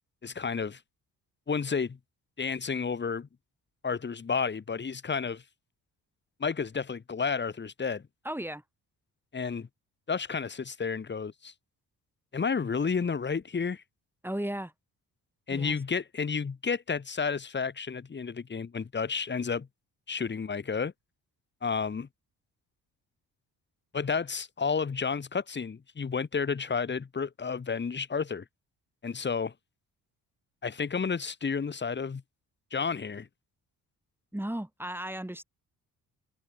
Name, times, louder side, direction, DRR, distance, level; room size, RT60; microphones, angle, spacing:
voice 1, 0.2-0.8 1.5-2.0 2.4-3.3 3.8-5.4 6.4-8.0 9.3-9.7 10.1-11.5 12.3-13.8 15.5-19.7 20.1-20.9 21.6-22.1 23.9-28.4 29.0-29.5 30.6-32.2 32.7-33.3, left 5 dB, 30° left, 1.2 m, -31 dB
voice 2, 8.2-8.6 14.2-14.7 15.5-15.8 34.3-35.4, right 1 dB, 5° right, 3.9 m, -35 dB
cardioid pair, 75°, 38 cm